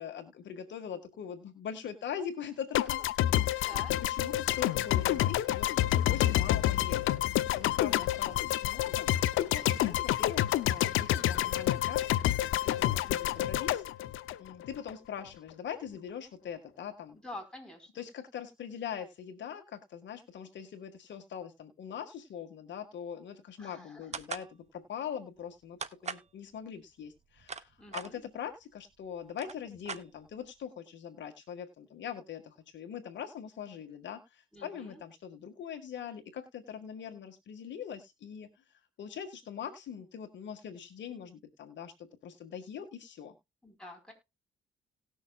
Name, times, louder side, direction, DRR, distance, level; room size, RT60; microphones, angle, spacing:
voice 1, 0.0-3.0 3.4-5.7 6.1-7.1 7.6-13.8 14.4-17.2 18.0-25.8 26.0-38.5 39.0-41.9 42.2-43.3, left 8 dB, 65° left, 5 dB, 1.8 m, -42 dB
sound 1, 2.7-14.9, left 13 dB, 85° left, 0.7 m, -28 dB
voice 2, 3.6-4.0 7.9-8.4 17.2-18.1 23.6-24.1 27.8-28.2 34.5-35.0 43.6-44.1, left 1 dB, 5° left, 0 dB, 4.4 m, -47 dB
sound 2, 24.1-24.5 25.8-26.3 27.2-28.1 28.9-29.0 29.3-30.5, right 5 dB, 35° right, 0.9 m, -40 dB
18.5 x 6.4 x 2.4 m, 0.24 s
cardioid pair, 90°, 20 cm